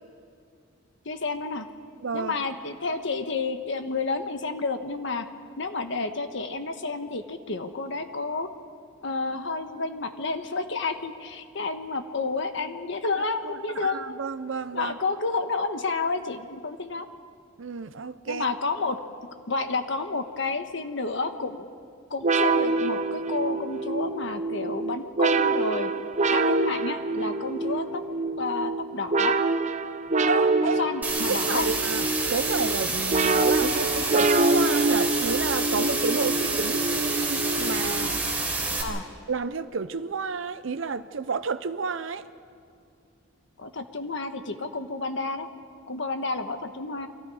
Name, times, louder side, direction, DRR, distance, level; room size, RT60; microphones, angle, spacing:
voice 1, 1.0-1.7 2.1-5.2 5.6-8.5 9.0-14.2 14.7-17.1 18.3-19.0 19.5-21.7 22.1-25.9 26.3-28.0 28.4-29.4 30.8-31.7 38.8-39.0 43.6-45.5 45.9-47.1, left 3 dB, 65° left, 7 dB, 1.4 m, -30 dB
voice 2, 2.0-2.3 13.4-15.0 17.6-18.5 30.3-30.8 31.3-38.7 39.3-42.3, right 4 dB, 75° right, 11 dB, 0.7 m, -31 dB
sound 1, 22.2-38.4, right 3 dB, 40° right, 0.7 m, -26 dB
sound 2, 31.0-38.8, right 3 dB, 10° right, 3.9 m, -28 dB
29.5 x 24.0 x 4.9 m, 2.4 s
head